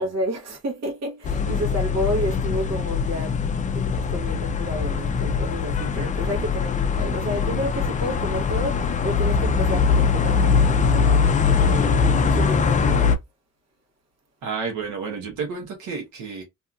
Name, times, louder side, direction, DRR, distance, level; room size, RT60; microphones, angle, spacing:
voice 1, 0.0-3.4 3.7-13.2, equal, 60° right, 1.1 m, -30 dB
sound 1, 1.2-13.2, left 5 dB, 25° left, 0.3 m, -22 dB
voice 2, 14.4-16.4, right 5 dB, 75° right, 1.0 m, -31 dB
2.7 x 2.4 x 2.3 m
cardioid pair, 90°, 30 cm